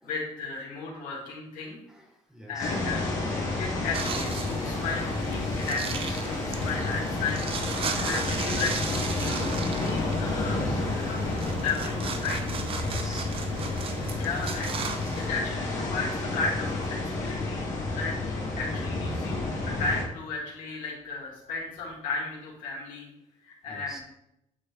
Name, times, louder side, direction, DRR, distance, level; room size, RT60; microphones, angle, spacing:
voice 1, 0.0-1.8 2.5-3.1 3.6-7.4 7.9-8.8 9.0-9.4 9.8-12.6 14.2-14.7 15.2-17.7 17.9-19.5 19.8-23.1 23.4-24.0, left 4 dB, 85° left, -3 dB, 2.5 m, -34 dB
voice 2, 1.9-2.8 7.9-8.3 10.3-10.9 12.8-13.3 23.7-24.0, right 1 dB, 5° right, 0 dB, 1.2 m, -41 dB
sound 1, 2.6-20.0, left 2 dB, 65° left, 2.3 m, -30 dB
sound 2, 3.9-15.3, right 6 dB, 45° right, 0.7 m, -37 dB
9.3 x 4.2 x 3.6 m, 0.82 s
cardioid pair, 150°, 13 cm